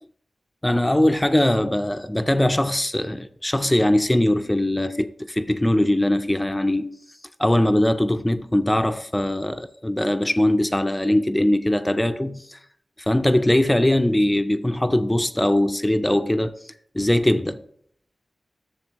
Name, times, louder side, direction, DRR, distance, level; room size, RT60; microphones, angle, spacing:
voice 1, 0.6-7.0 7.4-12.6 13.0-16.5 16.9-17.6, left 1 dB, 10° left, 0.4 m, -21 dB
10.5 x 7.0 x 3.0 m
wide cardioid pair, 85°, 0 cm